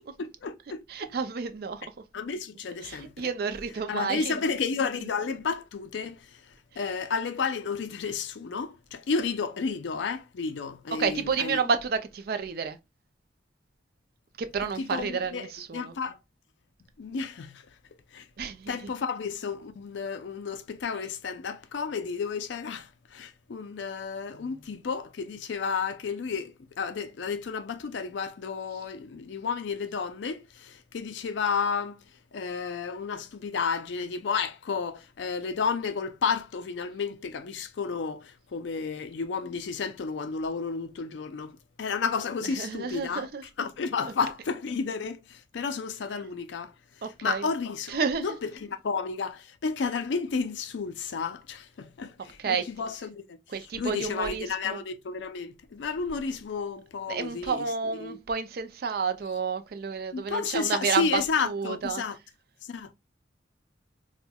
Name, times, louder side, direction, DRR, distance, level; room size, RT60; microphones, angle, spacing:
voice 1, 0.2-0.8 2.1-3.3 3.9-6.4 6.8-11.6 14.8-16.2 17.0-17.6 18.1-18.3 18.7-32.0 32.3-43.3 43.6-46.7 47.2-53.4 53.8-57.6 58.0-58.2 60.1-62.1 62.7-62.9, left 5 dB, 75° left, 0.4 m, -32 dB
voice 2, 0.9-1.9 2.8-4.4 6.7-6.8 11.0-12.8 14.4-15.9 18.4-18.9 42.4-43.4 44.0-44.1 47.0-47.5 47.9-48.3 52.4-52.7 53.5-54.8 57.1-62.0, right 5 dB, 55° right, 0.4 m, -30 dB
4.2 x 2.1 x 2.2 m
head